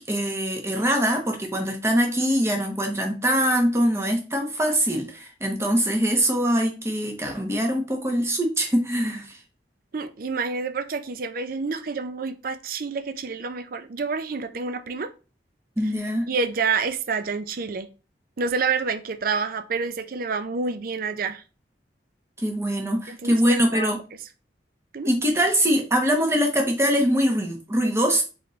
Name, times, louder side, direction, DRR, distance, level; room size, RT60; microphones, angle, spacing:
voice 1, 0.0-9.3 15.8-16.3 22.4-24.0 25.0-28.2, equal, 15° right, 1.1 m, -23 dB
voice 2, 9.9-15.1 16.3-17.9 18.4-21.4 23.1-23.9 24.9-25.1, right 5 dB, 55° right, 0.5 m, -28 dB
4.2 x 3.9 x 3.2 m
head